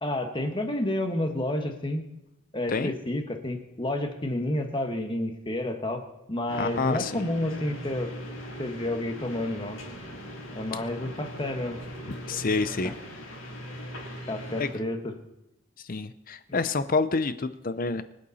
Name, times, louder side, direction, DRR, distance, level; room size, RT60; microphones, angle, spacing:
voice 1, 0.0-2.0 2.5-6.0 6.3-8.1 8.6-9.8 10.5-11.8 12.8-12.9 14.3-15.1, left 1 dB, 20° left, 5 dB, 1.4 m, -30 dB
sound 1, 6.5-14.7, equal, 75° left, 4.8 m, -40 dB
voice 2, 6.6-7.2 12.3-12.9 14.6-14.7 15.8-18.0, left 4 dB, 40° left, 12 dB, 0.6 m, -28 dB
24.5 x 8.5 x 4.2 m, 0.87 s
head